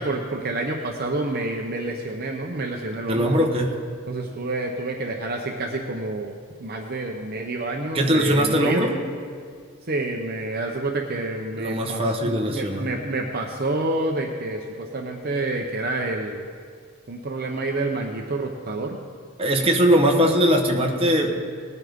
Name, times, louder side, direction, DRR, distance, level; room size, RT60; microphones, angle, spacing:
voice 1, 0.0-3.4 4.1-6.3 6.6-8.8 9.9-16.4 17.1-19.0, right 2 dB, 45° right, 2 dB, 0.8 m, -28 dB
voice 2, 3.1-3.7 7.9-9.0 11.6-12.9 19.4-21.5, equal, 25° right, 1 dB, 1.1 m, -20 dB
19.0 x 9.6 x 3.7 m, 2.1 s
head